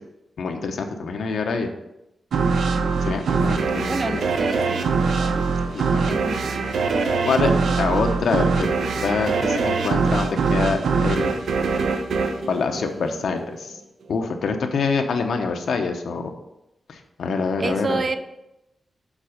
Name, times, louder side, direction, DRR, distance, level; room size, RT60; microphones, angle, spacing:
voice 1, 0.4-1.7 3.0-4.0 5.7-6.2 7.2-7.5 7.8-8.7 9.0-11.3 12.5-13.8 14.1-16.3 16.9-18.0, left 4 dB, 80° left, 5 dB, 0.8 m, -25 dB
sound 1, 2.3-13.5, right 4 dB, 80° right, 0.6 m, -23 dB
voice 2, 3.3-4.9 5.9-6.4 7.0-7.1 7.4-7.5 7.9-8.0 17.6-18.2, right 3 dB, 35° right, 9 dB, 0.5 m, -29 dB
7.4 x 4.2 x 5.1 m, 0.90 s
wide cardioid pair, 160°, 0 cm